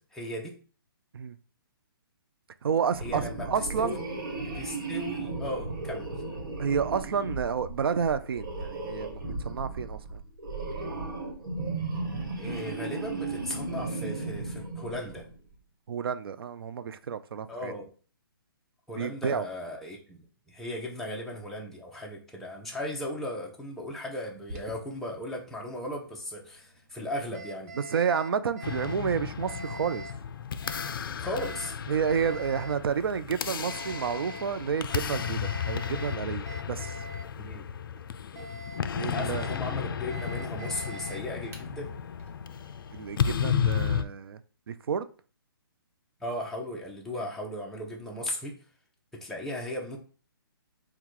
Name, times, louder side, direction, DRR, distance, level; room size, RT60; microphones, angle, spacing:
voice 1, 0.2-0.6 3.0-4.0 4.4-6.1 12.4-15.2 17.5-17.9 18.9-27.7 31.0-31.8 37.4-37.7 39.0-41.9 46.2-48.6 49.1-50.0, left 1 dB, 5° left, 0.6 m, -37 dB
voice 2, 2.6-3.2 3.5-4.0 6.6-10.2 15.9-17.7 18.9-19.5 27.7-30.1 31.9-37.0 38.9-39.5 42.9-44.4 44.7-45.1, right 7 dB, 75° right, 0.4 m, -30 dB
sound 1, 2.9-15.4, right 3 dB, 60° right, 1.2 m, -35 dB
Alarm, 24.3-43.7, right 1 dB, 40° right, 0.9 m, -46 dB
sound 2, 28.6-44.0, left 8 dB, 65° left, 0.4 m, -33 dB
3.7 x 2.3 x 4.5 m
hypercardioid pair, 155°, 12 cm